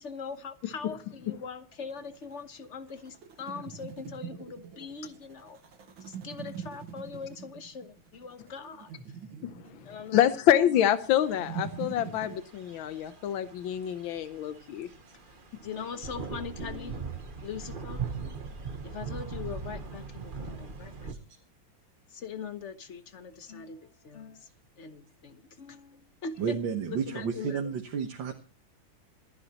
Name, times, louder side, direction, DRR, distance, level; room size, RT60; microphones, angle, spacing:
voice 1, 0.0-5.6 6.0-8.9 9.8-10.8 15.6-17.1 17.4-18.0 18.8-21.2 22.1-24.5 24.8-26.6 26.9-27.7, left 5 dB, 45° left, 10 dB, 1.2 m, -41 dB
sound 1, 1.7-12.4, right 7 dB, 90° right, 2.3 m, -44 dB
voice 2, 10.1-14.9, left 11 dB, 85° left, 11 dB, 1.6 m, -26 dB
sound 2, 11.2-21.1, right 5 dB, 30° right, 1.2 m, -40 dB
voice 3, 21.1-21.4 26.4-28.3, right 7 dB, 70° right, 4 dB, 2.0 m, -32 dB
27.0 x 10.5 x 3.0 m, 0.34 s
omnidirectional pair, 2.1 m